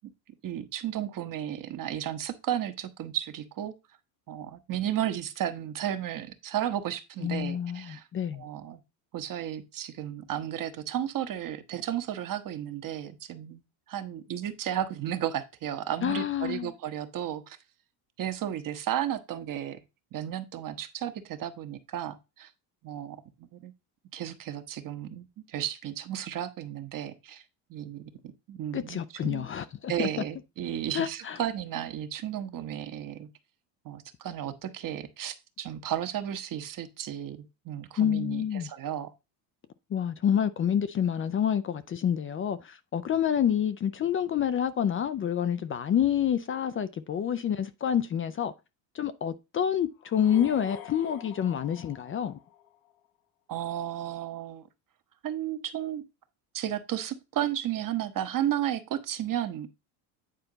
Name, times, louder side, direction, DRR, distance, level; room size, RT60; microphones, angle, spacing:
voice 1, 0.4-3.7 4.3-8.0 8.4-8.8 9.1-13.6 13.9-17.6 18.2-19.8 20.1-22.5 22.8-23.7 24.1-27.4 27.7-28.1 28.5-29.5 29.9-33.3 33.8-39.1 53.5-54.7 55.2-56.0 56.5-59.7, right 11 dB, 40° right, 1.1 m, -33 dB
voice 2, 7.2-8.4 16.0-16.7 28.7-30.1 30.9-31.4 38.0-38.7 39.9-48.5 48.9-52.4, left 9 dB, 30° left, 0.4 m, -28 dB
sound 1, 50.0-53.0, left 9 dB, 85° left, 2.2 m, -47 dB
9.2 x 4.3 x 3.9 m
supercardioid pair, 110°, 48 cm